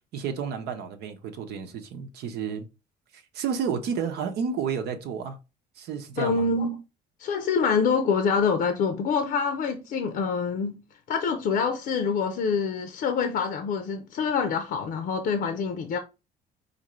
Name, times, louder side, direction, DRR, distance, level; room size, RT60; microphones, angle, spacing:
voice 1, 0.1-2.6 3.1-5.4 5.8-6.5, right 6 dB, 75° right, 0.9 m, -31 dB
voice 2, 6.2-6.8 7.2-10.8 11.1-16.0, left 5 dB, 60° left, 0.6 m, -26 dB
5.0 x 2.6 x 3.1 m
cardioid pair, 110°, 17 cm